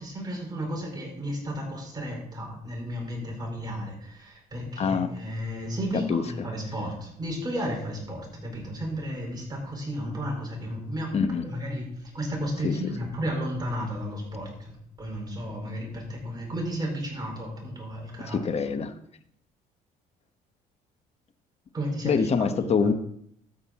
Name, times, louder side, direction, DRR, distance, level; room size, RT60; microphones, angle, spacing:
voice 1, 0.0-11.1 11.4-14.7 15.0-18.4 21.7-22.9, equal, 25° right, 0 dB, 4.8 m, -33 dB
voice 2, 4.8-5.1 5.9-6.2 11.1-11.5 12.6-12.7 18.3-18.9 22.0-22.9, left 5 dB, 40° left, 9 dB, 1.0 m, -25 dB
13.0 x 7.7 x 4.2 m, 0.69 s
cardioid pair, 110°, 17 cm